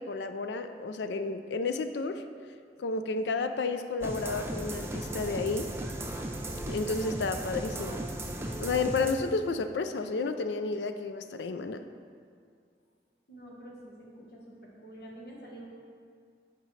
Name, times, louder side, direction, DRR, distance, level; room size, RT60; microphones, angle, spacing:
voice 1, 0.0-2.2 2.8-5.7 6.7-8.0 8.6-11.8, left 3 dB, 85° left, 9 dB, 0.4 m, -31 dB
sound 1, 4.0-9.1, right 1 dB, 15° right, 0.4 m, -36 dB
voice 2, 13.3-15.7, right 1 dB, 65° left, -3 dB, 1.3 m, -47 dB
9.0 x 5.2 x 3.2 m, 2.2 s
head